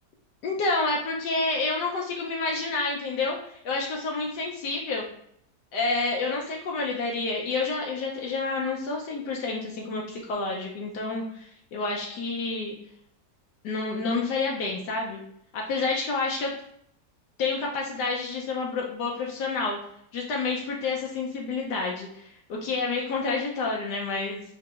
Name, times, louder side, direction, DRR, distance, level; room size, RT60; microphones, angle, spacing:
voice 1, 0.4-5.0 5.7-12.7 13.6-15.2 15.5-16.5 17.4-19.8 20.1-24.4, left 3 dB, 80° left, -1 dB, 1.2 m, -29 dB
4.7 x 2.7 x 2.4 m, 0.70 s
omnidirectional pair, 1.8 m